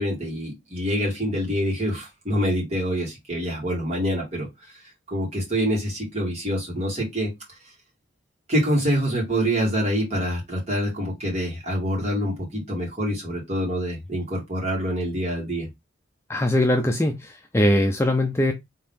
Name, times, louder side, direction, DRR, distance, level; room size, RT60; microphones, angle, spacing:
voice 1, 0.0-4.8 5.1-7.3 8.5-15.7, equal, 35° right, 2.3 m, -26 dB
voice 2, 16.3-18.5, left 1 dB, 15° left, 0.4 m, -21 dB
3.8 x 3.6 x 2.7 m
head